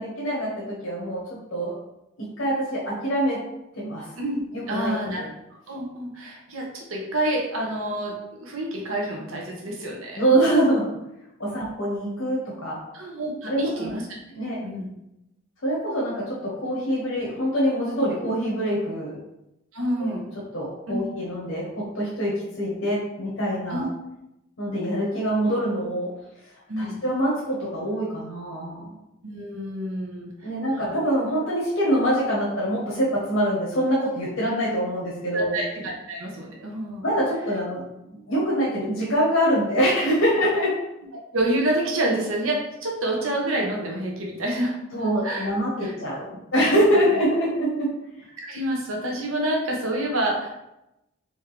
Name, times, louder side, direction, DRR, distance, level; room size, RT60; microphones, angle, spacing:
voice 1, 0.0-1.7 2.4-3.4 3.8-4.1 4.5-5.3 10.2-10.9 11.4-12.8 13.5-13.9 14.3-14.6 15.6-19.2 20.0-20.1 20.5-23.9 24.6-26.1 26.8-28.9 30.4-35.6 37.0-37.8 38.1-40.7 44.9-48.0, equal, 70° left, -6 dB, 1.2 m, -24 dB
voice 2, 4.7-5.3 5.7-10.2 12.9-14.1 14.6-14.9 19.7-20.2 20.9-21.1 23.7-23.9 26.7-27.0 29.2-30.9 35.3-37.0 41.3-44.8 45.2-45.5 45.8-45.9 46.9-47.1 48.4-50.5, right 1 dB, 75° right, -1 dB, 1.1 m, -28 dB
4.3 x 3.4 x 3.3 m, 0.88 s
head